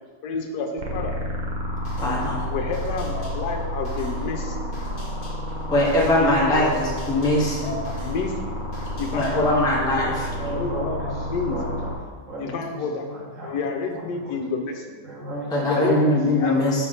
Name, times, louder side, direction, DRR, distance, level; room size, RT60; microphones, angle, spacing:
voice 1, 0.2-1.2 2.5-4.6 6.2-6.8 7.6-8.4 8.9-9.5 10.5-11.0 11.3-11.6 12.4-13.0 13.4-14.9 15.7-16.1 16.4-16.6, left 4 dB, 75° left, 3 dB, 1.3 m, -29 dB
sound 1, 0.8-12.0, equal, 90° right, 0.4 m, -30 dB
sound 2, 1.8-9.7, left 1 dB, 30° left, 1.4 m, -42 dB
voice 2, 2.0-2.4 5.7-7.7 9.1-10.3 15.5-16.9, left 1 dB, 5° left, -5 dB, 0.7 m, -21 dB
voice 3, 10.4-11.9 12.2-13.6 13.9-14.4 15.0-16.1, right 1 dB, 50° right, -5 dB, 1.7 m, -36 dB
4.9 x 3.4 x 5.5 m, 1.5 s
omnidirectional pair, 1.9 m